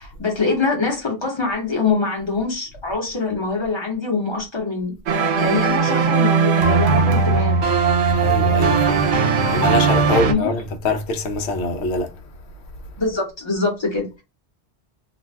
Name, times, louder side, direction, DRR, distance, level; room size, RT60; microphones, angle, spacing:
voice 1, 0.0-4.9 5.4-7.6 10.1-10.5 13.0-14.2, left 4 dB, 25° left, 0.9 m, -24 dB
sound 1, 5.1-10.3, right 5 dB, 75° right, 0.9 m, -18 dB
voice 2, 8.2-9.1 9.5-12.1, left 2 dB, 70° left, 0.9 m, -24 dB
2.5 x 2.2 x 3.2 m
omnidirectional pair, 1.2 m